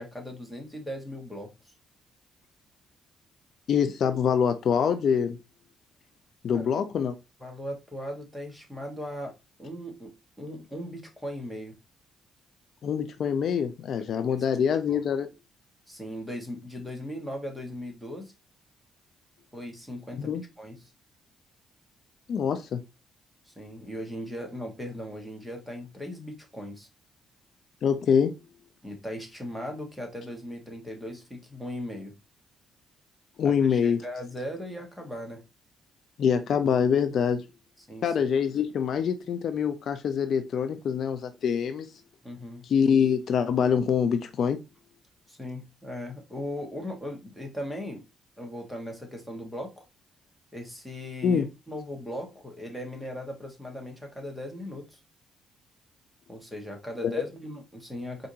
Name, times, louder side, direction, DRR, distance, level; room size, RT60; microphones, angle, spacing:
voice 1, 0.0-1.7 6.5-6.6 7.4-11.8 14.9-15.0 15.9-18.3 19.5-20.8 23.5-26.9 28.8-32.1 33.4-35.4 37.9-38.1 42.2-42.6 45.3-48.0 48.4-49.8 50.5-55.0 56.3-58.3, equal, ahead, 1.3 m, -38 dB
voice 2, 3.7-5.4 6.4-7.1 12.8-15.3 20.2-20.4 22.3-22.8 27.8-28.3 33.4-34.0 36.2-37.4 38.0-41.9 42.6-44.6 51.2-51.5, left 7 dB, 65° left, 0.4 m, -25 dB
4.5 x 2.5 x 2.7 m
cardioid pair, 90°, 0 cm